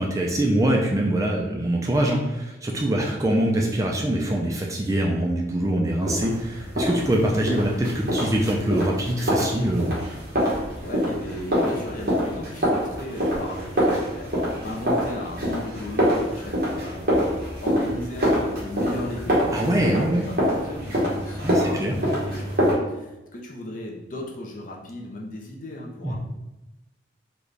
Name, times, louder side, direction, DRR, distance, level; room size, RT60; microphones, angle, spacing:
voice 1, 0.0-10.0 19.5-20.3 21.4-21.9 26.0-26.2, right 1 dB, 15° right, 0 dB, 0.3 m, -23 dB
sound 1, 6.1-22.7, equal, 50° right, 1.3 m, -25 dB
voice 2, 10.7-22.6 22.9-26.2, left 1 dB, 45° left, -1 dB, 0.5 m, -36 dB
3.9 x 2.3 x 3.2 m, 0.99 s
head